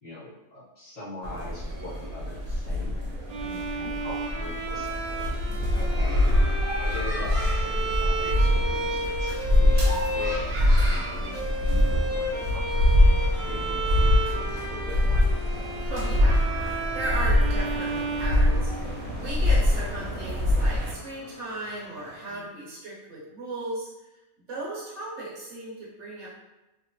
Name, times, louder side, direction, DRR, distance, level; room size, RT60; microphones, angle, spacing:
voice 1, 0.0-3.0 3.4-5.2 6.8-15.2 22.3-22.5, left 2 dB, 30° left, -11 dB, 1.3 m, -42 dB
sound 1, 1.2-20.9, left 1 dB, 80° right, 1.1 m, -24 dB
Bowed string instrument, 3.3-19.2, right 2 dB, 40° right, 0.6 m, -33 dB
voice 2, 5.7-6.2 15.8-23.9 24.5-26.3, right 2 dB, 60° right, -7 dB, 1.1 m, -36 dB
sound 2, 6.3-22.3, equal, 65° left, 0.9 m, -47 dB
2.8 x 2.0 x 2.9 m, 0.99 s
omnidirectional pair, 1.5 m